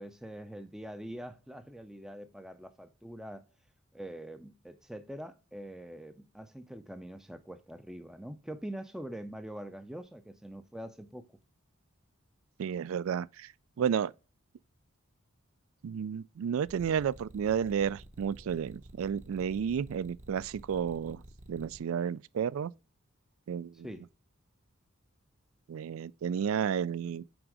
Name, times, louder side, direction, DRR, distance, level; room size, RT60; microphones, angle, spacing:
voice 1, 0.0-3.4 3.9-11.3 23.8-24.0, right 1 dB, ahead, 0.4 m, -44 dB
voice 2, 12.6-13.5 13.8-14.1 15.8-21.2 21.5-22.7 23.5-23.9 25.7-27.2, right 7 dB, 70° right, 0.3 m, -32 dB
sound 1, 16.7-21.8, right 1 dB, 35° right, 0.9 m, -51 dB
6.2 x 5.1 x 4.7 m
head